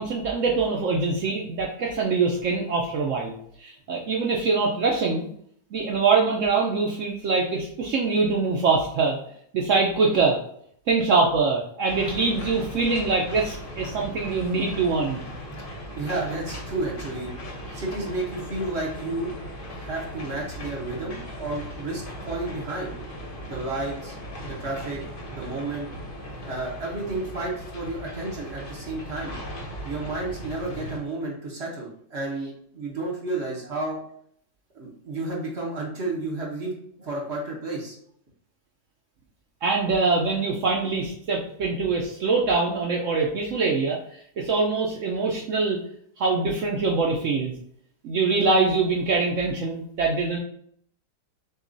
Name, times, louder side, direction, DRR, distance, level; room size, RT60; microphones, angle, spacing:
voice 1, 0.0-5.3 5.7-9.2 9.5-10.4 10.9-15.2 17.7-17.8 39.6-45.8 46.2-47.5 48.0-50.4, right 4 dB, 65° right, -1 dB, 0.7 m, -24 dB
sound 1, 11.9-31.0, equal, 45° left, 0.7 m, -38 dB
voice 2, 16.0-17.3 17.7-19.3 19.7-22.9 23.4-25.0 25.3-25.9 26.4-29.3 29.8-34.0 34.7-36.7 37.0-37.9, right 2 dB, 45° right, -3 dB, 1.0 m, -31 dB
6.5 x 2.3 x 2.6 m, 0.66 s
omnidirectional pair, 1.8 m